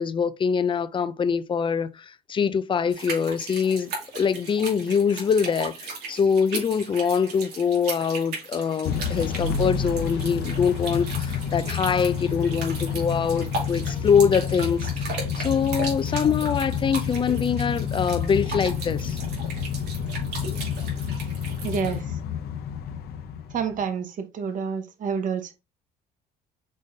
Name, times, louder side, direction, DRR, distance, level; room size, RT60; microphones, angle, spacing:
voice 1, 0.0-19.2, left 6 dB, 30° left, 0.4 m, -24 dB
sound 1, 2.9-22.0, right 3 dB, 80° right, 2.4 m, -37 dB
Motor vehicle (road) / Engine starting / Accelerating revving vroom, 8.8-23.8, left 7 dB, 70° left, 0.6 m, -29 dB
voice 2, 21.6-22.0 23.5-25.5, right 6 dB, 50° right, 1.0 m, -28 dB
5.2 x 3.6 x 2.7 m
cardioid pair, 110°, 17 cm